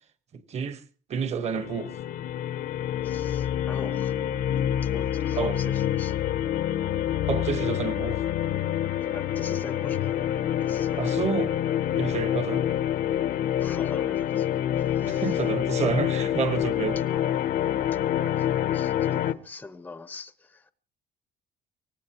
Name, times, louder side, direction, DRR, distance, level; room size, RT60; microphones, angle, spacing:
voice 1, 0.3-0.8 1.1-1.9 5.4-5.6 7.3-8.2 11.0-11.5 11.9-12.6 15.0-17.0, right 6 dB, 40° right, 1.3 m, -29 dB
sound 1, 1.4-19.3, left 11 dB, 55° left, 0.8 m, -27 dB
voice 2, 3.0-4.2 4.8-6.2 9.1-10.2 10.6-11.2 13.6-15.4 17.1-20.7, left 3 dB, 10° left, 0.7 m, -43 dB
24.0 x 18.0 x 3.0 m
cardioid pair, 160°, 17 cm